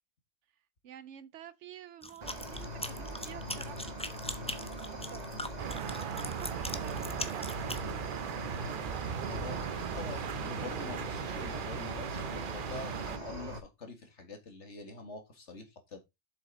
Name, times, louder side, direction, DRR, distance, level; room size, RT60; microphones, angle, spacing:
voice 1, 0.8-4.0 4.3-5.4 5.7-7.5, right 10 dB, 85° right, 1.0 m, -49 dB
sound 1, 2.0-7.8, left 1 dB, 5° left, 0.8 m, -40 dB
Cricket, 2.2-13.6, equal, 35° right, 1.8 m, -41 dB
sound 2, 5.6-13.2, right 8 dB, 55° right, 0.7 m, -38 dB
voice 2, 9.3-16.0, left 4 dB, 85° left, 2.4 m, -45 dB
7.6 x 6.8 x 4.0 m
omnidirectional pair, 1.2 m